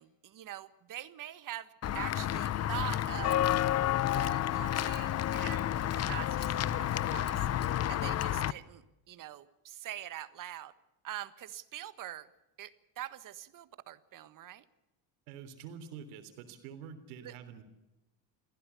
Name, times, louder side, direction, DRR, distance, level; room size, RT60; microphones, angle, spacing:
voice 1, 0.0-3.5 4.0-7.4 7.9-10.7 11.0-12.3 12.6-14.6 17.2-17.3, right 13 dB, 50° right, 14 dB, 1.5 m, -44 dB
Walk footsteps / Bell, 1.8-8.5, left 12 dB, 35° left, 0.7 m, -30 dB
voice 2, 15.3-17.6, right 7 dB, 90° right, 9 dB, 3.5 m, -47 dB
22.5 x 16.0 x 8.3 m, 0.98 s
supercardioid pair, 105°, 42 cm